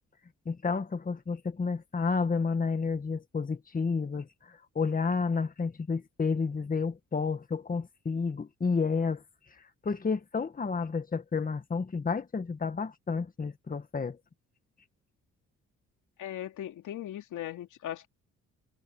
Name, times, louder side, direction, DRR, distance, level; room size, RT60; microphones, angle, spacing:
voice 1, 0.4-9.2 9.8-14.2, left 5 dB, 30° left, 1.8 m, -31 dB
voice 2, 16.2-18.1, left 12 dB, 80° left, 3.1 m, -38 dB
cardioid pair, 90°, 30 cm